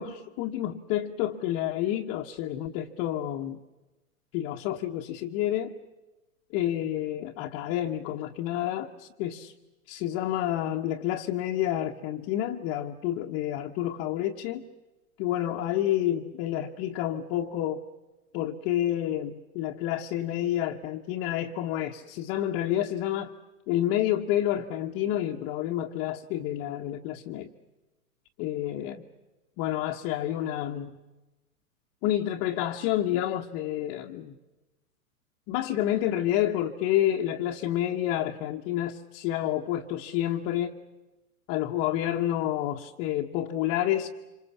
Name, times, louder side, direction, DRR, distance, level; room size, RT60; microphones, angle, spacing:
voice 1, 0.0-3.6 4.3-5.7 6.5-9.5 9.9-14.6 15.2-17.8 18.3-23.3 23.7-27.5 28.4-29.0 29.6-31.0 32.0-34.4 35.5-40.8 41.5-44.1, left 12 dB, 30° left, 1 dB, 1.2 m, -29 dB
26.5 x 25.5 x 7.2 m, 1.1 s
hypercardioid pair, 120°, 44 cm